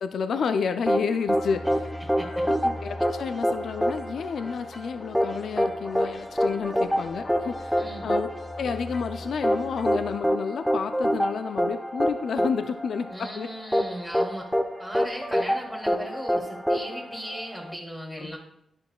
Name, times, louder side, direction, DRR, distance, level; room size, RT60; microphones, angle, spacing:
voice 1, 0.0-1.9 2.6-8.3 8.6-13.5 18.2-18.4, left 6 dB, 70° left, 9 dB, 0.4 m, -30 dB
sound 1, 0.9-17.7, equal, ahead, 0.8 m, -26 dB
sound 2, 1.3-10.2, left 1 dB, 40° left, 1.0 m, -41 dB
voice 2, 2.0-2.4 7.8-8.1 13.1-14.5 14.8-18.4, equal, 20° left, -4 dB, 1.8 m, -38 dB
10.5 x 5.3 x 2.2 m, 0.75 s
cardioid pair, 65°, 0 cm